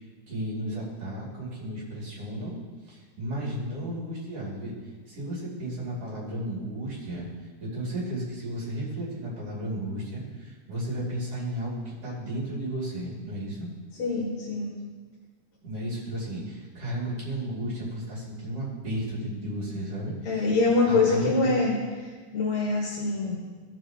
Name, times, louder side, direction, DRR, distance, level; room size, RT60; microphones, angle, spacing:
voice 1, 0.3-2.5 2.9-4.7 5.1-7.3 7.6-13.7 15.6-20.5 20.9-21.5, right 1 dB, 45° right, -6 dB, 3.8 m, -33 dB
voice 2, 14.0-14.7 20.3-21.7 22.3-23.4, left 3 dB, 60° left, -6 dB, 2.8 m, -24 dB
16.0 x 7.0 x 3.1 m, 1.5 s
omnidirectional pair, 3.8 m